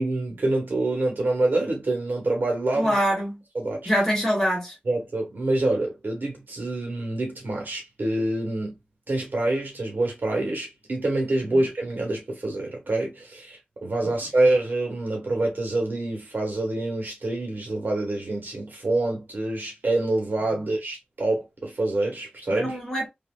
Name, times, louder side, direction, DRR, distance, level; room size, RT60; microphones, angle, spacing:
voice 1, 0.0-2.9 3.5-3.9 4.8-8.8 9.1-22.8, right 2 dB, 70° right, 1.2 m, -26 dB
voice 2, 2.7-3.4 3.9-4.8 11.5-11.6 14.0-14.1 22.5-23.1, equal, 10° left, 1.7 m, -24 dB
3.1 x 2.7 x 2.2 m
wide cardioid pair, 75°, 3 cm